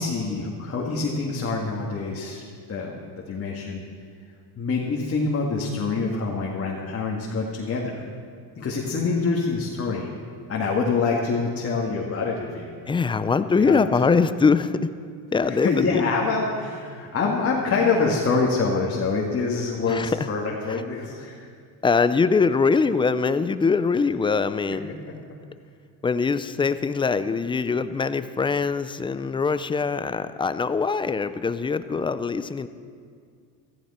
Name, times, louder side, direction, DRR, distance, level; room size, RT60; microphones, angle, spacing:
voice 1, 0.0-2.4 2.7-3.8 4.6-7.9 8.6-10.1 10.5-12.7 13.6-14.2 15.5-21.5 25.1-25.4, left 4 dB, 30° left, -3 dB, 2.0 m, -26 dB
voice 2, 12.9-14.9 15.3-16.0 19.9-20.3 20.7-20.8 21.8-25.2 26.0-32.7, left 5 dB, 15° left, 13 dB, 0.3 m, -23 dB
16.5 x 14.5 x 4.3 m, 2.2 s
supercardioid pair, 105°, 44 cm